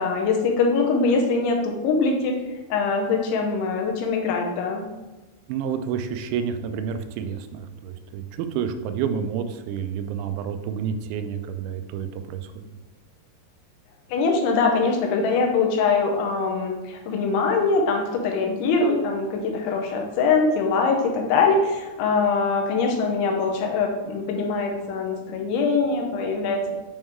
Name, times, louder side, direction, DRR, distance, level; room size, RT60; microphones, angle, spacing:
voice 1, 0.0-2.4 2.7-4.9 14.1-26.7, left 4 dB, 90° left, 2 dB, 3.3 m, -23 dB
voice 2, 5.5-12.7, right 7 dB, 90° right, 9 dB, 2.9 m, -29 dB
8.8 x 3.1 x 3.6 m, 1.2 s
omnidirectional pair, 5.2 m